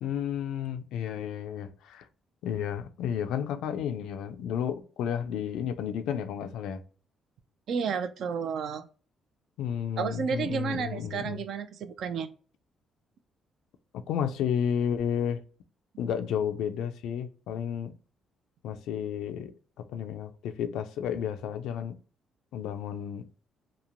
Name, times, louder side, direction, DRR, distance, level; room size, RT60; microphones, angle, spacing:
voice 1, 0.0-2.1 2.4-6.8 9.6-11.4 14.1-15.4 16.0-18.0 18.6-19.5 19.8-22.0 22.5-23.3, left 8 dB, 85° left, 0.3 m, -32 dB
voice 2, 7.7-8.9 10.0-12.3, right 6 dB, 65° right, 0.4 m, -31 dB
2.9 x 2.1 x 2.4 m
cardioid pair, 90°, 0 cm